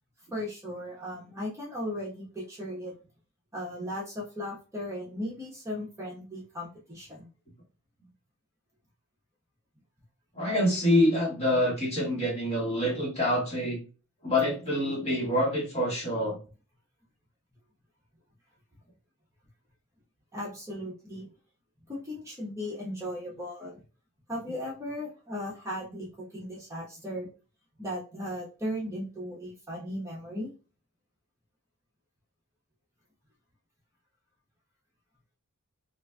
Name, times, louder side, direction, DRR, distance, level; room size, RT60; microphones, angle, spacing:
voice 1, 0.3-2.9 3.5-7.3 20.3-21.3 21.9-23.8 24.3-26.1 26.3-27.3 27.8-30.5, left 1 dB, 15° right, -5 dB, 1.0 m, -37 dB
voice 2, 10.3-13.8 14.2-16.4, left 1 dB, 30° left, -4 dB, 1.6 m, -26 dB
4.0 x 2.6 x 2.2 m, 0.34 s
head